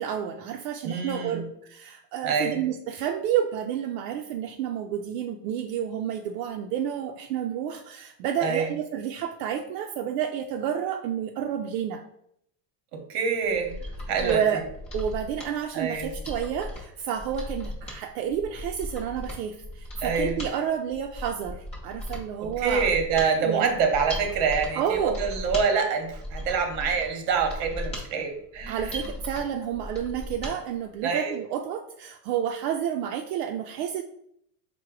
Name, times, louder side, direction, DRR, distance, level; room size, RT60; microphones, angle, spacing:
voice 1, 0.0-1.4 1.7-12.0 14.2-14.6 14.9-22.9 23.4-23.7 24.7-25.2 28.7-34.0, right 9 dB, 75° right, 3 dB, 0.5 m, -30 dB
voice 2, 0.8-1.5 2.2-2.6 8.4-8.7 12.9-13.7 14.1-14.4 15.7-16.1 20.0-20.4 22.4-29.0 31.0-31.4, right 5 dB, 45° right, 4 dB, 1.0 m, -26 dB
Mechanisms, 13.5-30.6 30.9-31.0, left 1 dB, 15° left, 0.7 m, -37 dB
4.6 x 2.2 x 4.6 m, 0.72 s
supercardioid pair, 170°, 49 cm